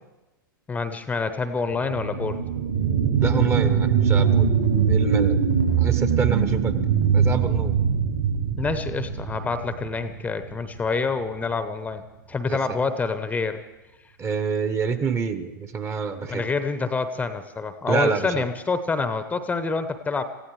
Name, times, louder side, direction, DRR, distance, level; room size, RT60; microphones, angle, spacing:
voice 1, 0.7-2.4 8.6-12.0 12.3-13.6 16.3-20.2, left 4 dB, 10° left, 10 dB, 0.8 m, -27 dB
sound 1, 1.7-10.8 11.2-11.3, right 7 dB, 65° right, 3.9 m, -22 dB
voice 2, 3.2-4.5 4.9-5.4 5.8-6.7 7.1-7.8 12.5-12.6 14.2-16.4 17.9-18.4, right 5 dB, 20° right, 9 dB, 1.0 m, -26 dB
27.0 x 15.5 x 3.2 m, 1.1 s
figure-of-eight pair, 100°, 12 cm